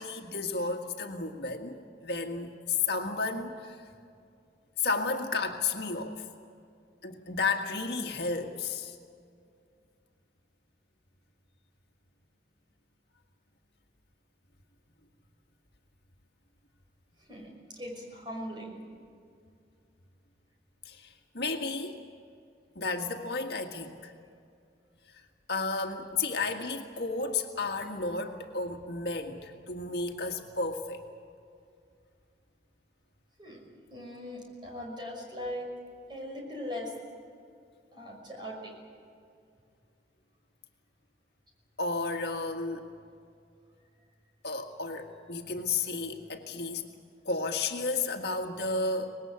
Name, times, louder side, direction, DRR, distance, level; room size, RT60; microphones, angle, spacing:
voice 1, 0.0-3.8 4.8-6.3 7.0-9.0 20.9-22.0 22.8-24.1 25.1-25.2 25.5-31.0 41.8-42.8 44.4-46.9 47.3-49.1, left 4 dB, 65° left, 3 dB, 1.8 m, -32 dB
voice 2, 17.3-18.8 33.4-33.6 33.9-35.7 36.1-36.9 37.9-38.7, left 1 dB, 25° right, 0 dB, 5.9 m, -40 dB
25.0 x 20.5 x 8.2 m, 2.3 s
head